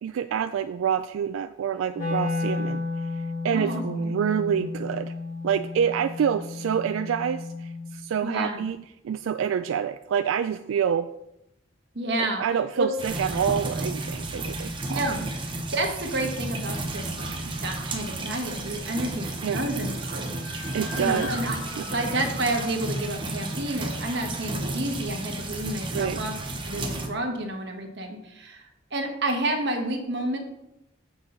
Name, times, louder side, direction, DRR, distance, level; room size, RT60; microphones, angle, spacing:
voice 1, 0.0-2.8 3.1-5.1 5.4-8.8 9.0-11.1 12.4-15.0 19.4-19.6 20.7-21.3 21.8-21.9 25.9-26.2, right 8 dB, 90° right, 10 dB, 0.3 m, -27 dB
Wind instrument woodwind instrument, 1.9-8.0, left 3 dB, 45° left, 1.9 m, -32 dB
voice 2, 3.5-4.1 8.2-8.6 11.9-12.4 12.8-12.9 14.9-15.2 15.7-20.4 21.0-21.6 21.9-26.3 26.6-30.4, right 1 dB, 60° right, 2 dB, 1.3 m, -30 dB
sound 1, 13.0-27.1, right 2 dB, 25° right, 0.9 m, -32 dB
sound 2, 19.6-23.7, left 2 dB, 65° left, 1.5 m, -41 dB
7.2 x 6.1 x 3.9 m, 0.85 s
head